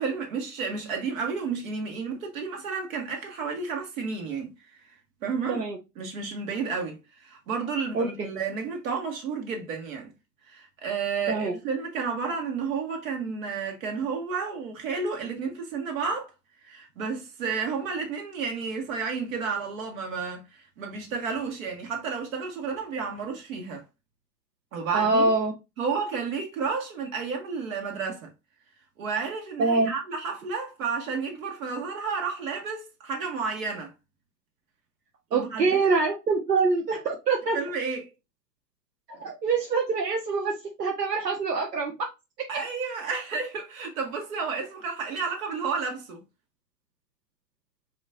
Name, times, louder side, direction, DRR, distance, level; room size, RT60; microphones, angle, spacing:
voice 1, 0.0-4.5 5.2-5.6 6.0-10.1 10.5-16.3 16.6-23.8 24.7-25.3 25.8-28.3 29.0-33.9 35.3-35.9 37.5-38.1 42.5-46.2, right 5 dB, 55° right, 1.7 m, -31 dB
voice 2, 24.9-25.5 29.6-29.9 35.3-37.6 39.1-42.1, right 4 dB, 75° right, 1.2 m, -25 dB
5.3 x 3.1 x 2.5 m
figure-of-eight pair, 115°, 49 cm